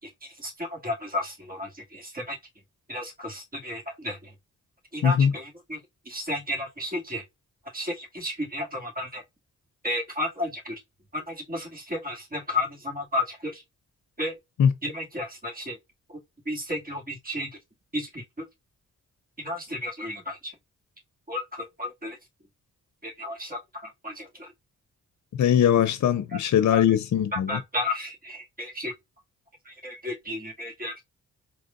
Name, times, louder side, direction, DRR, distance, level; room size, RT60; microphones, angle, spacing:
voice 1, 0.0-2.4 2.9-4.3 4.9-5.8 6.1-7.2 7.7-9.2 9.8-10.8 11.1-13.6 14.2-14.3 14.8-15.8 16.1-16.2 16.5-17.5 17.9-18.2 19.4-20.5 21.3-22.2 23.0-24.5 26.3-26.4 26.7-26.8 27.3-28.9 29.7-31.0, left 1 dB, 25° right, 2.3 m, -33 dB
voice 2, 5.0-5.3 14.6-14.7 25.4-27.6, left 9 dB, 60° left, 0.6 m, -21 dB
5.0 x 3.2 x 2.6 m
supercardioid pair, 50°, 32 cm